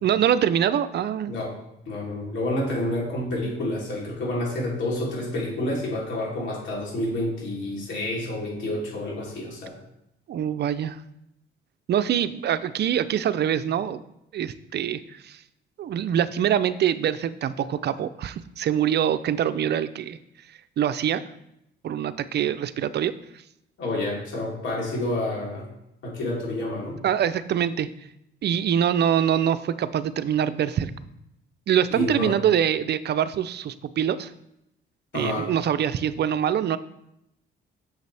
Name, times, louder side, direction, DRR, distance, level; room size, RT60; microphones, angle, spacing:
voice 1, 0.0-1.3 10.3-11.0 11.9-14.0 14.3-15.4 15.8-20.2 20.8-21.2 21.8-23.1 27.0-27.9 28.4-30.9 31.7-34.3 35.1-36.8, right 9 dB, 55° right, 13 dB, 0.5 m, -24 dB
voice 2, 1.9-9.8 23.8-25.7 26.0-27.0 31.9-32.3 35.1-35.5, left 1 dB, 70° left, -3 dB, 3.3 m, -29 dB
8.0 x 6.8 x 3.4 m, 0.82 s
cardioid pair, 90°, 20 cm